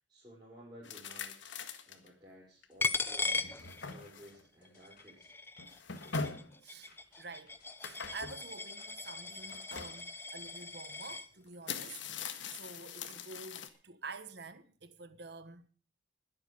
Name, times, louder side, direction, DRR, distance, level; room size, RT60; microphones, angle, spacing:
voice 1, 0.1-1.5 1.9-5.4, right 1 dB, 20° right, 5.5 m, -55 dB
sound 1, 0.8-2.1 2.6-2.7 3.3-4.4 5.6-6.5 7.8-8.4 9.5-10.0 11.0-11.1 11.5-13.7, left 5 dB, 75° left, 1.7 m, -42 dB
sound 2, 2.7-10.1, left 4 dB, 45° left, 3.9 m, -66 dB
Coin (dropping), 2.8-4.3 4.7-11.3, left 3 dB, 10° left, 0.7 m, -39 dB
voice 2, 6.6-15.7, right 3 dB, 55° right, 1.2 m, -49 dB
21.0 x 8.3 x 5.2 m
head